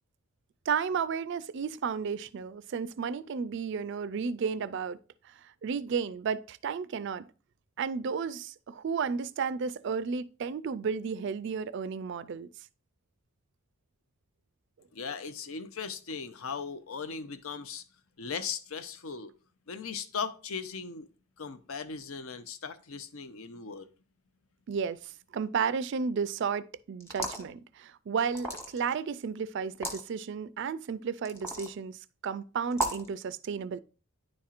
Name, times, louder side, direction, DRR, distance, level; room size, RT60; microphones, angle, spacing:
voice 1, 0.7-5.0 5.4-7.3 7.8-12.5 24.7-33.8, right 6 dB, 55° right, 0.3 m, -33 dB
voice 2, 14.9-17.8 18.2-19.3 19.7-21.1 21.4-23.9, left 5 dB, 70° left, 0.6 m, -38 dB
sound 1, 27.0-27.5 28.3-28.9 29.7-30.0 31.3-31.7 32.7-33.1, right 1 dB, 10° left, 1.0 m, -34 dB
10.0 x 4.3 x 2.4 m
head